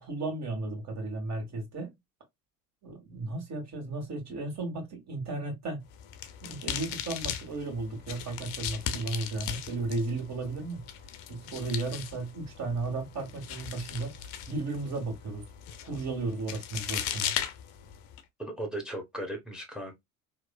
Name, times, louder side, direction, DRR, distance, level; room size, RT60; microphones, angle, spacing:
voice 1, 0.0-1.9 2.8-5.8 6.4-10.8 11.3-15.4 15.8-17.3, right 3 dB, 40° right, 1.5 m, -34 dB
sound 1, 5.9-18.2, left 9 dB, 55° left, 0.6 m, -38 dB
voice 2, 18.4-20.0, right 1 dB, ahead, 0.9 m, -37 dB
3.0 x 2.0 x 2.2 m
hypercardioid pair, 75°, 41 cm